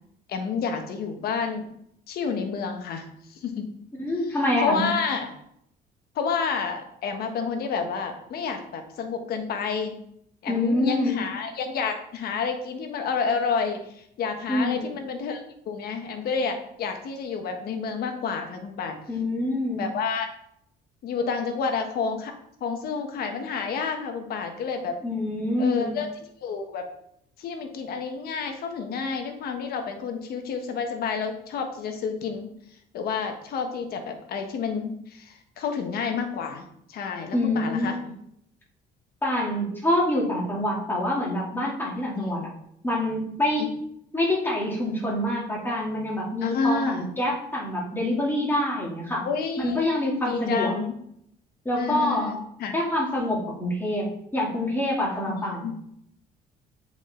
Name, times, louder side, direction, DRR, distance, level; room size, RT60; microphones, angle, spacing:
voice 1, 0.3-1.6 2.1-3.7 4.2-5.3 6.1-10.0 10.4-15.4 15.7-19.0 19.8-20.3 21.0-22.3 22.6-25.0 25.6-26.1 26.4-26.9 27.4-32.5 32.9-38.0 42.1-42.6 43.6-43.7 46.4-47.1 49.2-49.9 50.2-50.9 51.7-52.8 55.3-55.7, left 5 dB, 65° left, 5 dB, 1.3 m, -29 dB
voice 2, 4.0-4.9 10.5-11.2 14.5-14.9 19.1-19.8 25.0-26.0 37.3-37.9 39.2-42.5 42.8-43.7 44.1-49.3 49.6-50.8 51.6-52.3 52.7-54.1 54.3-55.7, left 1 dB, 10° left, -4 dB, 2.9 m, -26 dB
7.6 x 5.0 x 3.8 m, 0.73 s
cardioid pair, 110°, 17 cm